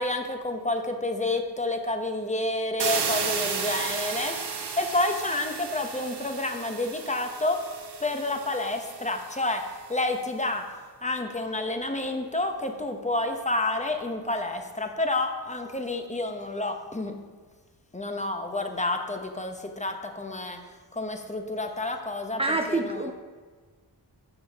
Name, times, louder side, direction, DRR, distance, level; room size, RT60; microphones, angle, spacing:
voice 1, 0.0-4.4 4.8-7.7 8.0-10.7 11.0-17.2 17.9-20.6 20.9-22.4 22.7-23.1, left 2 dB, 15° left, 5 dB, 0.9 m, -29 dB
sound 1, 2.8-9.6, right 6 dB, 65° right, 1.1 m, -33 dB
voice 2, 22.4-23.1, right 2 dB, 15° right, 5 dB, 0.4 m, -26 dB
12.5 x 6.8 x 3.5 m, 1.5 s
wide cardioid pair, 105°, 42 cm